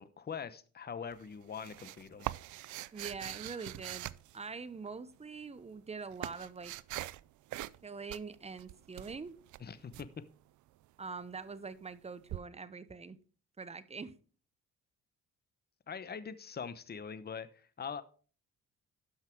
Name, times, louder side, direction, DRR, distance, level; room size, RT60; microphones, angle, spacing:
voice 1, 0.0-2.3 9.6-10.2 15.9-18.0, left 6 dB, 35° left, 0.9 m, -43 dB
sound 1, 1.1-4.9 5.7-7.2 7.5-7.8 8.1-10.1 12.3-12.4, right 16 dB, 75° right, 0.5 m, -43 dB
voice 2, 2.9-6.7 7.8-9.4 11.0-13.2 13.6-14.1, right 5 dB, 20° right, 0.8 m, -44 dB
12.0 x 5.7 x 4.6 m
cardioid pair, 90°, 30 cm